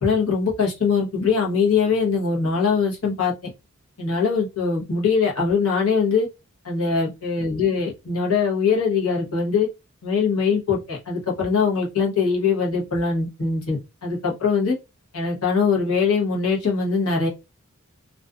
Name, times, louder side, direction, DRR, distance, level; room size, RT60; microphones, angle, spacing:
voice 1, 0.0-3.5 4.0-6.3 6.6-9.7 10.0-14.7 15.1-17.3, left 5 dB, 75° left, 1.0 m, -22 dB
2.4 x 2.4 x 2.4 m
head